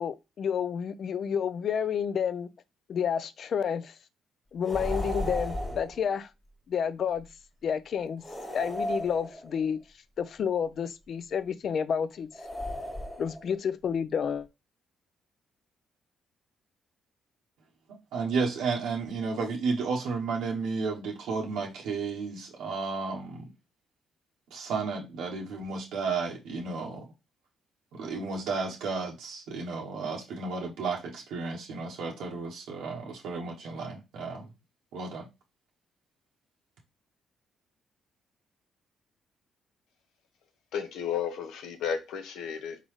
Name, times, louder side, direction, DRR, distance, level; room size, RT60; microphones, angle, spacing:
voice 1, 0.0-2.5 2.9-3.9 4.5-6.3 6.7-7.3 7.6-8.2 8.5-9.8 10.2-12.3 13.2-14.5, left 7 dB, 60° left, 0.4 m, -30 dB
sound 1, 4.6-6.0 8.2-9.7 12.3-13.5, equal, 10° left, 1.5 m, -34 dB
voice 2, 18.1-23.5 24.5-27.0 27.9-34.5 34.9-35.3, right 4 dB, 85° right, 0.9 m, -33 dB
voice 3, 40.7-42.8, left 7 dB, 85° left, 0.8 m, -33 dB
4.0 x 3.8 x 3.1 m
cardioid pair, 90°, 0 cm